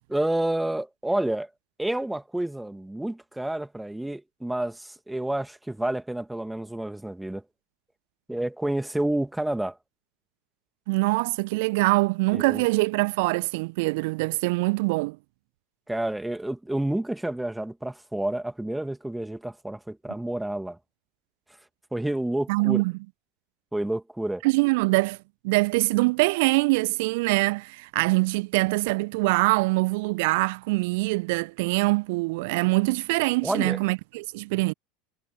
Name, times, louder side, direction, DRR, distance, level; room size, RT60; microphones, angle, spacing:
voice 1, 0.1-1.5 1.8-7.4 8.3-9.8 12.3-12.6 15.9-20.8 21.9-22.8 23.7-24.4 33.4-33.8, right 1 dB, 5° right, 2.2 m, -29 dB
voice 2, 10.9-15.2 22.5-22.9 24.4-25.2 25.4-34.7, right 25 dB, 55° right, 1.1 m, -24 dB
figure-of-eight pair, 75°, 0 cm